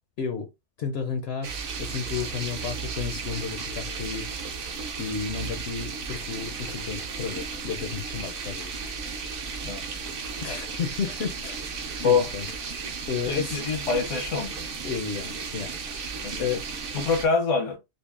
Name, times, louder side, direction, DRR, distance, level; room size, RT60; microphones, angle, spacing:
voice 1, 0.2-0.5 0.8-1.5 1.8-4.3 5.0-9.6 10.4-11.6 12.0-12.4 13.1-13.6 14.8-16.1 16.4-16.7, left 6 dB, 65° left, 0.7 m, -32 dB
sound 1, 1.4-17.3, right 5 dB, 55° right, 0.7 m, -34 dB
voice 2, 13.3-14.6 16.2-16.5 16.9-17.8, left 5 dB, 85° left, 1.2 m, -25 dB
5.2 x 2.0 x 2.4 m
omnidirectional pair, 1.3 m